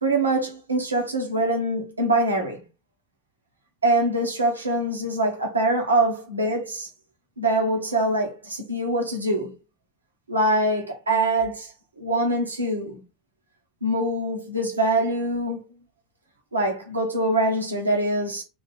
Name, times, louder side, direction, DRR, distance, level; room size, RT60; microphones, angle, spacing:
voice 1, 0.0-2.6 3.8-6.9 7.4-9.5 10.3-11.7 12.0-13.0 13.8-15.6 16.5-18.4, right 1 dB, 80° right, 1.3 m, -24 dB
3.5 x 3.3 x 4.1 m
figure-of-eight pair, 75°, 0 cm